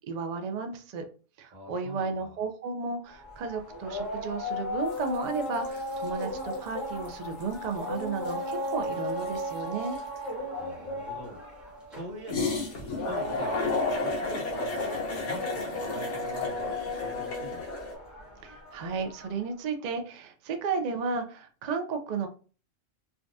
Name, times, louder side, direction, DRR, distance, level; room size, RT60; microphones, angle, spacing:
voice 1, 0.1-1.0 1.4-10.0 18.4-22.3, right 4 dB, 65° right, 6 dB, 0.4 m, -33 dB
voice 2, 1.5-2.4 10.5-11.4 11.9-17.7, right 1 dB, 40° right, -1 dB, 1.0 m, -43 dB
sound 1, 3.1-19.5, left 1 dB, ahead, 0.9 m, -36 dB
sound 2, 4.9-5.2 5.4-6.7 7.1-7.2 7.4-10.3 12.3-17.9, left 3 dB, 70° left, 1.2 m, -33 dB
3.5 x 2.3 x 2.6 m, 0.38 s
omnidirectional pair, 1.3 m